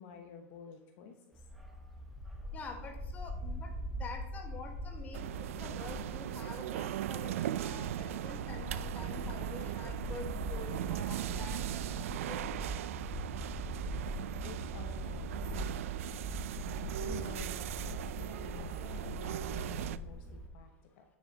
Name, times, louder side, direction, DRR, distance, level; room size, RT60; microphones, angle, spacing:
voice 1, 0.0-1.5 14.4-16.4 16.7-21.0, left 6 dB, 55° left, 5 dB, 0.9 m, -51 dB
Bark, 1.3-20.5, equal, ahead, 1.0 m, -42 dB
voice 2, 2.5-12.7, left 4 dB, 25° left, 4 dB, 1.4 m, -48 dB
sound 1, 5.1-20.0, right 12 dB, 85° right, 0.4 m, -39 dB
8.9 x 7.1 x 3.8 m, 0.89 s
supercardioid pair, 145°, 7 cm